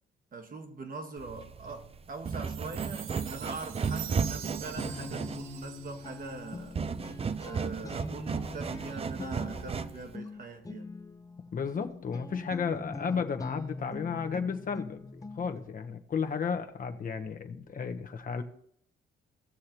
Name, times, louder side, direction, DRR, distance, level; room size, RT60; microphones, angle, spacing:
voice 1, 0.3-6.8 7.4-10.9, right 3 dB, 45° right, 1.3 m, -42 dB
sound 1, 1.2-10.1, right 5 dB, 30° right, 0.5 m, -35 dB
Chime, 2.3-6.7, right 9 dB, 85° right, 0.8 m, -45 dB
Guitar, 4.7-15.7, left 3 dB, 15° left, 0.6 m, -43 dB
voice 2, 11.5-15.1 15.3-18.4, left 6 dB, 45° left, 1.0 m, -33 dB
17.5 x 6.4 x 3.0 m
cardioid pair, 90°, 20 cm